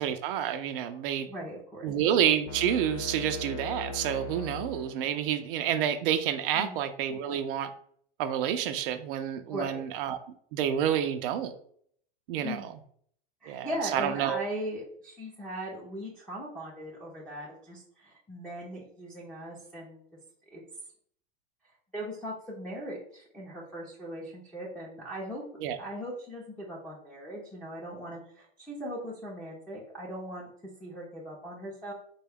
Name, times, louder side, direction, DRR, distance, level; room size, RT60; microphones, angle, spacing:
voice 1, 0.0-1.3 1.8-7.7 8.2-10.2 10.5-11.5 12.3-12.7 13.5-14.4 25.6-25.8, right 9 dB, 60° right, 8 dB, 0.4 m, -29 dB
voice 2, 1.3-1.9 6.5-6.8 9.4-9.9 12.4-12.7 13.4-20.0 20.5-20.6 21.9-25.4 25.8-30.5 30.8-31.9, equal, 5° left, -7 dB, 0.5 m, -39 dB
sound 1, 2.5-5.4, left 2 dB, 65° left, 0.5 m, -39 dB
3.6 x 2.3 x 3.4 m, 0.63 s
hypercardioid pair, 120°, 31 cm